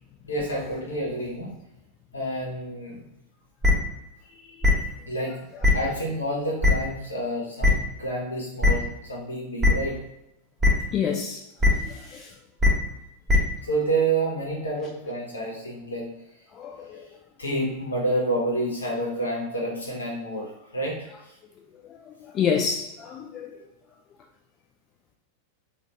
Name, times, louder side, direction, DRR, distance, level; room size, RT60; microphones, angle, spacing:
voice 1, 0.2-1.5 2.1-3.0 5.1-5.4 5.7-9.9 13.7-16.1 17.4-21.1, right 1 dB, 75° left, -2 dB, 1.1 m, -28 dB
sound 1, 3.6-3.7 4.6-4.7 5.6-5.7 6.6-6.7 7.6-7.7 8.6-8.7 9.6-9.7 10.6-10.7 11.6-11.7 12.6-12.7 13.3-13.4, left 2 dB, 15° right, 1.3 m, -17 dB
voice 2, 10.9-11.4 11.9-12.3 16.5-17.0 22.3-23.5, left 7 dB, 30° left, 2 dB, 0.4 m, -27 dB
3.8 x 2.5 x 3.3 m, 0.91 s
figure-of-eight pair, 90°, 0 cm